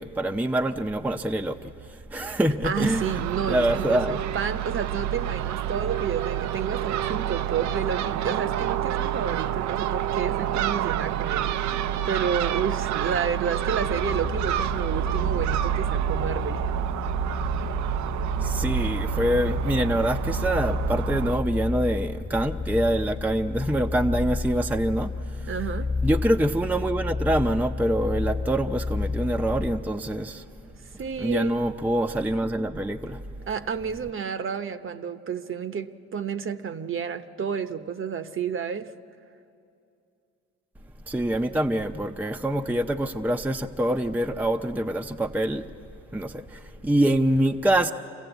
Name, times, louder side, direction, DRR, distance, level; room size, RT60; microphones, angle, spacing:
voice 1, 0.0-3.2 3.5-4.2 18.4-25.5 26.0-30.5 31.2-33.2 41.1-45.7 46.1-47.9, right 1 dB, 5° right, 0.6 m, -25 dB
voice 2, 2.6-16.6 25.5-25.9 31.0-31.5 33.5-38.9, right 7 dB, 45° right, 0.8 m, -30 dB
Crow / Gull seagull, 2.7-21.4, right 11 dB, 70° right, 0.5 m, -28 dB
sound 1, 13.8-29.9, left 3 dB, 20° left, 1.0 m, -31 dB
26.0 x 15.5 x 8.0 m
cardioid pair, 90°, 30 cm